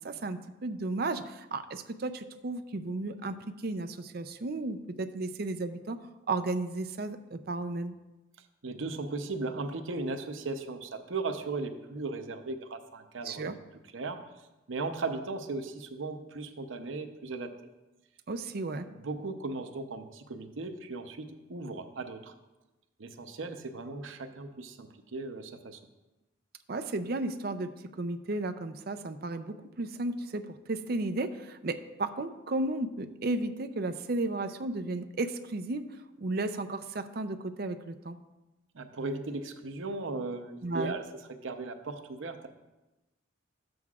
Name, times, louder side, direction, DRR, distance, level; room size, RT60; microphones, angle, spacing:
voice 1, 0.0-3.4 3.6-6.0 6.3-7.9 13.2-13.5 18.3-18.9 26.7-27.7 28.0-35.9 36.2-38.2 40.6-40.9, right 2 dB, 50° right, 9 dB, 0.5 m, -34 dB
voice 2, 8.6-13.5 13.9-14.2 14.7-17.5 18.9-22.3 23.0-25.8 38.7-42.5, right 3 dB, 80° right, 7 dB, 0.8 m, -37 dB
12.5 x 7.7 x 2.4 m, 1.0 s
head